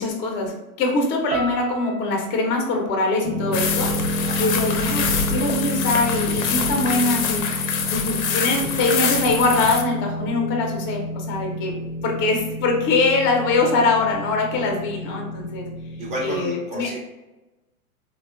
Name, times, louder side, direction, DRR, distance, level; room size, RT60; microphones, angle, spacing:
voice 1, 0.0-3.9 4.4-7.4 7.9-11.7 12.0-15.7 16.2-16.9, left 3 dB, 25° left, 1 dB, 0.6 m, -23 dB
sound 1, 1.3-5.5 5.8-6.6 7.1-7.4, right 3 dB, 60° right, 0.6 m, -37 dB
sound 2, 3.2-16.4, equal, 90° right, 1.0 m, -30 dB
sound 3, 3.5-9.8, left 6 dB, 65° left, 0.6 m, -25 dB
voice 2, 16.0-17.0, right 1 dB, 15° right, -3 dB, 0.6 m, -31 dB
3.4 x 2.2 x 2.3 m, 1.0 s
hypercardioid pair, 120°, 44 cm